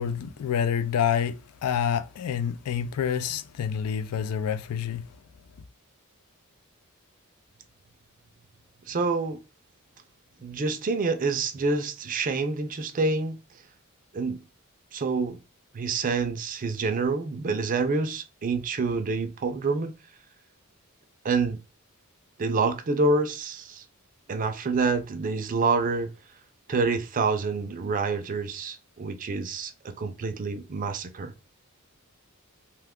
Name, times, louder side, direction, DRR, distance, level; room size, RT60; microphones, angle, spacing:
voice 1, 0.0-5.0, left 8 dB, 90° left, 0.4 m, -28 dB
voice 2, 8.9-9.4 10.4-13.4 14.1-14.4 14.9-15.4 15.7-19.9 21.2-21.6 22.4-23.8 24.3-26.1 26.7-31.3, right 3 dB, 40° right, 0.4 m, -27 dB
2.8 x 2.2 x 3.6 m
head